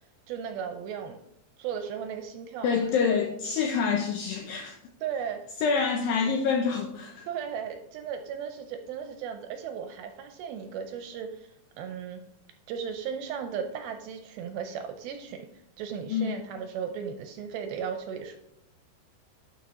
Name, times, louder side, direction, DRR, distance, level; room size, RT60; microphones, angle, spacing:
voice 1, 0.3-1.2 1.6-2.7 5.0-5.4 7.3-12.2 12.7-15.5 15.8-18.4, right 7 dB, 80° right, 2.2 m, -36 dB
voice 2, 2.6-4.8 5.6-7.3 16.1-16.4, left 5 dB, 80° left, 2.1 m, -27 dB
11.5 x 4.5 x 2.9 m
omnidirectional pair, 4.8 m